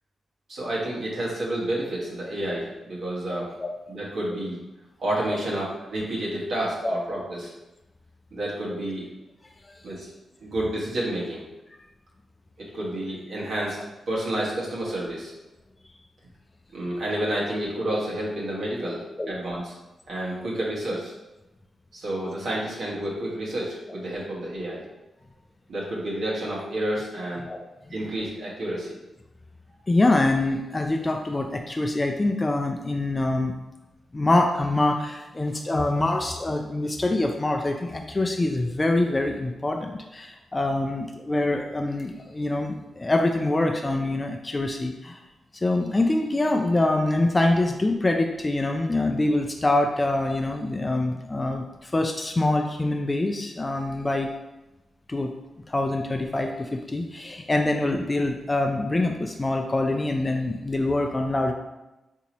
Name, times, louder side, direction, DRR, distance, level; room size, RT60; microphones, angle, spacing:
voice 1, 0.5-3.5 3.9-4.6 5.0-7.5 8.3-9.1 9.8-10.1 10.4-11.5 12.6-13.8 14.1-15.3 16.7-19.7 20.1-21.1 21.9-24.8 25.7-27.5 27.9-29.0, right 1 dB, 70° right, -5 dB, 1.1 m, -30 dB
voice 2, 29.9-33.5 34.1-45.2 45.5-54.3 55.1-55.3 55.7-61.5, left 2 dB, 30° left, 3 dB, 0.3 m, -25 dB
3.8 x 2.8 x 2.9 m, 1.0 s
supercardioid pair, 45°, 0 cm